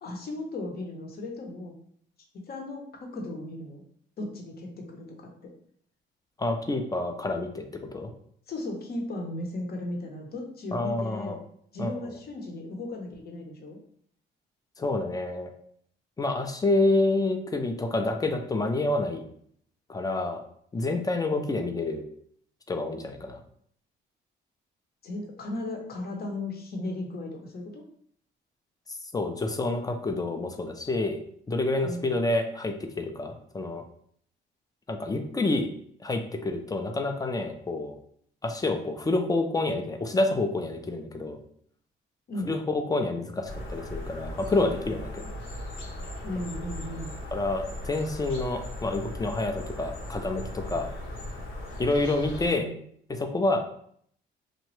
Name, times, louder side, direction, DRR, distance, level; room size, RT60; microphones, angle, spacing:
voice 1, 0.0-1.7 2.5-3.8 4.2-5.2 5.4-5.5 8.5-11.4 11.7-13.8 21.3-21.5 25.0-27.8 31.8-32.1 42.3-42.5 46.2-47.2 52.5-52.8, left 1 dB, 50° left, 1 dB, 0.8 m, -36 dB
voice 2, 6.4-8.1 10.7-11.4 11.8-12.1 14.8-15.5 16.2-19.2 19.9-20.4 20.7-22.0 22.7-23.4 29.1-31.2 31.5-33.8 34.9-35.7 36.0-37.9 38.4-41.4 42.4-45.3 47.3-50.9 51.8-52.7 53.1-53.6, left 2 dB, 20° left, 5 dB, 0.4 m, -28 dB
sound 1, 43.4-52.5, left 1 dB, 80° left, 0.9 m, -38 dB
2.9 x 2.2 x 3.1 m, 0.64 s
cardioid pair, 90°, 20 cm